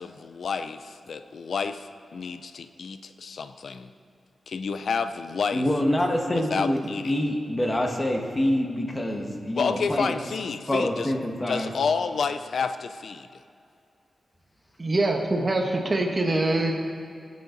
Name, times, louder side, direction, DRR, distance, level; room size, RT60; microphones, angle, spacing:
voice 1, 0.0-3.9 4.5-5.7 6.3-7.1 9.6-11.1 11.5-13.4, left 5 dB, 75° left, 10 dB, 0.5 m, -30 dB
voice 2, 5.5-6.8 7.0-10.2 10.7-11.7, left 1 dB, 25° left, 2 dB, 1.6 m, -26 dB
voice 3, 14.8-16.7, right 2 dB, 35° right, 2 dB, 1.2 m, -24 dB
21.0 x 8.5 x 4.0 m, 2.4 s
wide cardioid pair, 100°, 0 cm